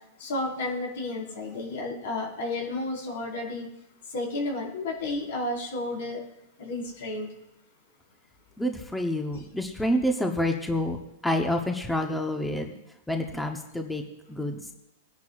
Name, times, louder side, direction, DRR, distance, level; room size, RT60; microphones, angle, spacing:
voice 1, 0.2-3.7 4.1-6.2 6.6-7.3, left 2 dB, 70° left, -1 dB, 4.7 m, -32 dB
voice 2, 8.6-12.7 13.1-14.0 14.3-14.6, left 1 dB, 5° left, 3 dB, 1.0 m, -28 dB
22.0 x 10.5 x 2.5 m, 0.90 s
hypercardioid pair, 145°, 0 cm